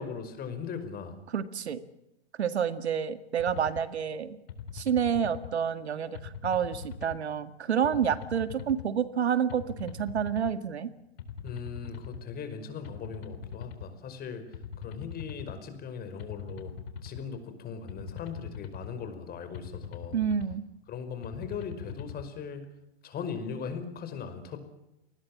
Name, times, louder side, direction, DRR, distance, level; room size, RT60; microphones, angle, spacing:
voice 1, 0.0-1.2 11.4-14.4 14.8-16.7 17.0-20.2 20.9-22.6 23.0-24.6, left 6 dB, 30° left, 9 dB, 5.2 m, -39 dB
voice 2, 1.3-1.8 2.4-4.4 4.7-10.9 20.1-20.6, right 8 dB, 85° right, 11 dB, 2.0 m, -29 dB
sound 1, 3.4-3.8 4.5-5.5 6.1-7.2 7.8-8.9 9.5-10.5 11.2-12.2 12.8-13.9 14.5-15.6 16.2-17.2 17.9-18.9 19.5-20.6 21.2-22.3, left 8 dB, 65° left, 3.8 m, -41 dB
28.0 x 20.0 x 7.4 m, 0.88 s
hypercardioid pair, 115°, 32 cm